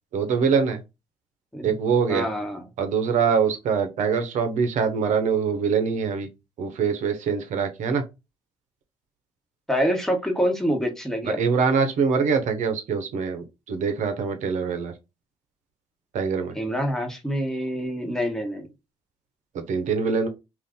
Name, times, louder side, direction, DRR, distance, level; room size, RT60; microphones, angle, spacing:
voice 1, 0.1-0.8 1.6-2.3 2.8-6.3 6.6-8.0 11.3-14.9 16.1-16.5 19.5-20.3, right 6 dB, 65° right, 0.8 m, -24 dB
voice 2, 2.1-2.7 9.7-11.4 16.5-18.7, equal, 5° left, 1.1 m, -26 dB
2.6 x 2.5 x 3.5 m
supercardioid pair, 60°, 14 cm